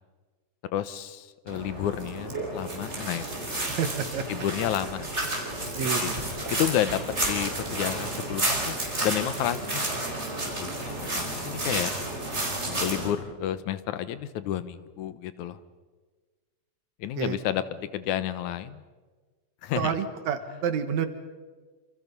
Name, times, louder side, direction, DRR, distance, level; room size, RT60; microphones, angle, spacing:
voice 1, 0.7-3.2 3.5-3.6 4.3-5.1 5.8-6.1 6.5-9.8 10.6-11.9 12.7-15.6 17.0-17.6 17.9-18.8 19.6-19.9, left 11 dB, 90° left, 14 dB, 2.5 m, -31 dB
sound 1, 1.5-13.1, right 1 dB, 20° right, 5.0 m, -31 dB
voice 2, 3.8-4.2 5.7-6.2 17.2-17.4 19.7-21.1, right 8 dB, 75° right, 9 dB, 2.8 m, -28 dB
28.0 x 27.5 x 5.5 m, 1.4 s
omnidirectional pair, 3.3 m